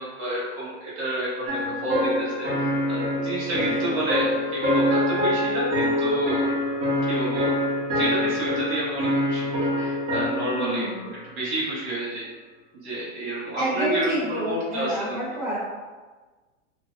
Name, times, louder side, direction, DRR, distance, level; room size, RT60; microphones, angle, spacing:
voice 1, 0.0-6.4 7.1-7.5 7.9-10.8 11.3-12.2 12.7-15.2, right 1 dB, 55° right, -7 dB, 1.1 m, -30 dB
sound 1, 1.5-10.9, left 1 dB, 35° right, 1.2 m, -25 dB
voice 2, 10.5-11.1 13.5-15.6, right 1 dB, ahead, -15 dB, 1.4 m, -28 dB
3.1 x 2.5 x 2.5 m, 1.3 s
hypercardioid pair, 145°, 37 cm